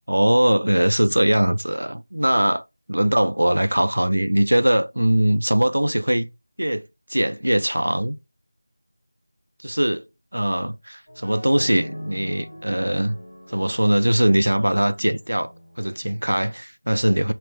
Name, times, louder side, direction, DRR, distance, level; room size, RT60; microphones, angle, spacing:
voice 1, 0.1-2.6 2.9-6.3 6.6-6.8 7.1-8.2 9.6-10.0 10.3-13.2 13.5-15.5 15.8-17.3, right 1 dB, 85° right, 0.5 m, -21 dB
sound 1, 11.1-16.6, left 1 dB, 75° left, 1.8 m, -41 dB
5.3 x 2.5 x 3.6 m
figure-of-eight pair, 170°, 0 cm